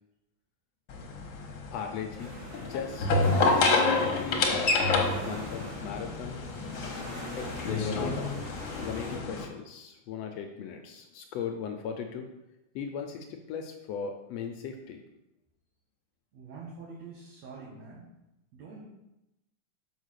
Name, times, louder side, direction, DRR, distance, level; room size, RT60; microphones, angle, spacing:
sound 1, 0.9-9.4, left 3 dB, 60° left, 1.3 m, -28 dB
voice 1, 1.7-2.3 2.6-3.1 3.3-4.9 5.2-6.4 7.3-8.4 8.8-12.3 12.7-15.0, left 7 dB, 75° left, 4 dB, 1.6 m, -38 dB
sound 2, 2.2-9.2, right 1 dB, 35° right, 1.9 m, -44 dB
voice 2, 16.3-18.1 18.5-18.8, right 4 dB, 60° right, -5 dB, 2.6 m, -45 dB
6.5 x 5.6 x 6.4 m, 0.91 s
omnidirectional pair, 3.6 m